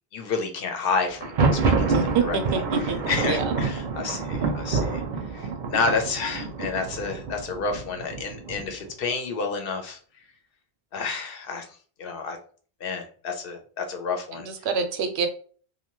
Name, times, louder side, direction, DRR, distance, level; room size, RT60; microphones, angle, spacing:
voice 1, 0.1-1.4 1.6-5.0 5.3-10.0 10.9-11.6 12.0-12.4 12.8-14.5, left 4 dB, 65° left, 5 dB, 0.8 m, -30 dB
Thunder, 1.1-8.9, right 4 dB, 55° right, 0.6 m, -27 dB
voice 2, 1.9-3.5 14.4-15.3, right 5 dB, 85° right, 7 dB, 0.9 m, -27 dB
2.7 x 2.2 x 2.9 m, 0.43 s
omnidirectional pair, 1.1 m